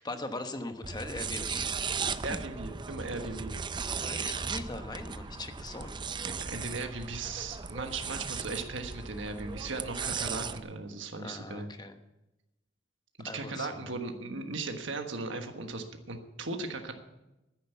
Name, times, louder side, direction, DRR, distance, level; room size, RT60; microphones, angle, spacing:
voice 1, 0.0-1.7 4.0-6.0 11.2-12.0 13.2-13.9, left 2 dB, 20° left, 7 dB, 1.1 m, -40 dB
sound 1, 0.8-10.6, right 5 dB, 25° right, 0.5 m, -36 dB
voice 2, 2.2-3.5 6.2-11.7 13.2-16.9, right 3 dB, 70° right, 5 dB, 1.4 m, -37 dB
10.5 x 9.6 x 8.2 m, 0.97 s
head